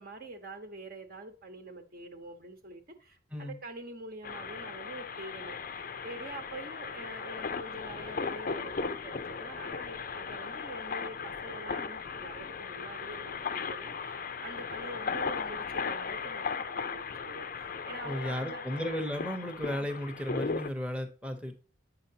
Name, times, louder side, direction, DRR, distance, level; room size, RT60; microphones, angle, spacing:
voice 1, 0.0-14.2 14.4-18.6, right 2 dB, 50° right, 1.0 m, -45 dB
sound 1, 4.2-20.7, left 5 dB, 45° left, 0.5 m, -37 dB
voice 2, 18.0-21.5, equal, 5° right, 0.8 m, -35 dB
8.5 x 5.7 x 2.8 m
head